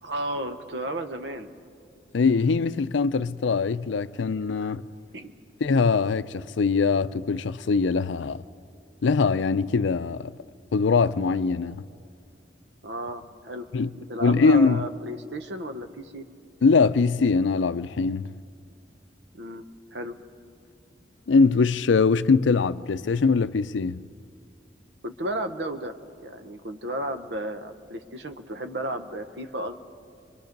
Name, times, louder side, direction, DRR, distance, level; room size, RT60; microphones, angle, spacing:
voice 1, 0.0-1.5 4.1-4.2 4.6-4.8 5.1-5.3 12.8-13.7 14.0-16.2 19.3-19.6 19.9-20.2 25.0-26.0 26.2-29.8, right 1 dB, 75° right, 1.0 m, -33 dB
voice 2, 2.1-4.8 5.6-8.4 9.0-10.4 10.7-11.8 13.7-13.9 14.2-14.9 16.6-18.4 21.3-24.0, left 4 dB, 90° left, 0.5 m, -22 dB
25.0 x 23.5 x 5.3 m
head